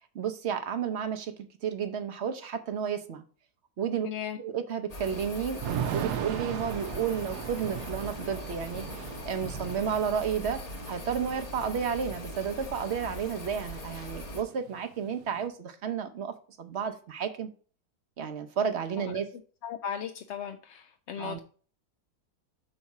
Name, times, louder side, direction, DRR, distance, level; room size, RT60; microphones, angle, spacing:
voice 1, 0.1-1.3 1.6-3.2 3.8-4.1 4.4-5.6 5.9-10.6 10.9-17.5 18.2-19.3 21.2-21.4, right 7 dB, 55° right, 8 dB, 0.9 m, -32 dB
voice 2, 4.0-4.4 19.6-21.4, left 8 dB, 65° left, 6 dB, 0.7 m, -36 dB
sound 1, 4.9-14.4, left 1 dB, 30° left, 0.9 m, -41 dB
Thunder / Rain, 5.6-13.4 13.7-13.8 14.1-15.5, right 9 dB, 85° right, 1.1 m, -38 dB
6.4 x 4.2 x 5.9 m, 0.42 s
omnidirectional pair, 1.7 m